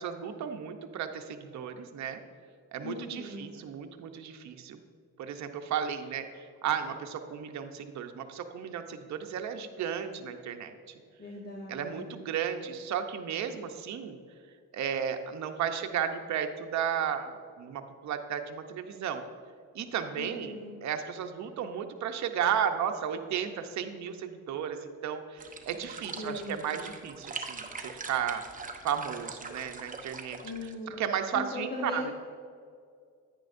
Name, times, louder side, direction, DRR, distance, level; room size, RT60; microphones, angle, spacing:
voice 1, 0.0-2.2 2.7-4.8 5.2-10.7 11.7-14.2 14.7-19.2 19.7-20.5 20.8-28.4 28.8-32.1, right 8 dB, 65° right, 6 dB, 0.8 m, -34 dB
voice 2, 2.8-3.5 11.2-12.2 20.1-20.7 26.1-26.6 30.4-30.9 31.3-32.1, left 2 dB, 35° left, -2 dB, 1.2 m, -39 dB
sound 1, 25.4-30.7, right 4 dB, 25° right, 0.9 m, -42 dB
10.0 x 9.7 x 2.6 m, 2.2 s
cardioid pair, 90°, 30 cm